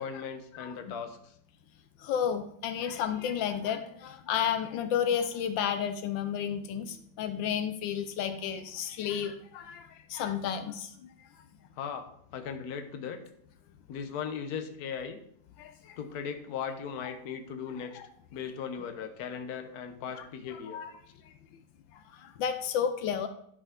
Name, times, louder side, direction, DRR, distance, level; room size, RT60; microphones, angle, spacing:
voice 1, 0.0-1.3 11.8-12.0 12.3-13.2 13.9-15.2 16.0-18.0 18.3-20.8, left 7 dB, 60° left, 6 dB, 1.3 m, -38 dB
voice 2, 2.0-10.9 15.6-16.0 17.0-17.1 17.9-18.1 20.7-20.9 21.3-21.4 21.9-23.3, left 8 dB, 80° left, 9 dB, 1.3 m, -32 dB
11.0 x 5.0 x 3.7 m, 0.67 s
omnidirectional pair, 2.0 m